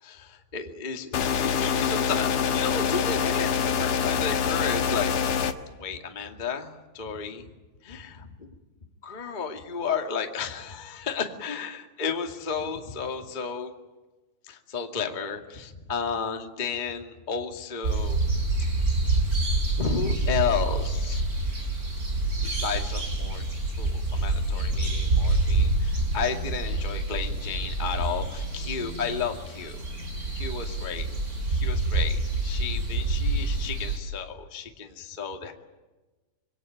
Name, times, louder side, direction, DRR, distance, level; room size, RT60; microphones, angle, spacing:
voice 1, 0.0-5.3 5.8-7.5 7.8-8.5 9.0-13.7 14.5-18.2 19.2-19.3 19.8-21.2 22.4-23.4 23.8-29.8 30.3-35.5, left 6 dB, 40° left, 4 dB, 0.6 m, -33 dB
sound 1, 1.1-5.5, left 7 dB, 65° left, 1.7 m, -25 dB
sound 2, 17.8-34.0, right 2 dB, 20° right, 4.5 m, -27 dB
26.0 x 23.5 x 9.2 m, 1.2 s
omnidirectional pair, 5.1 m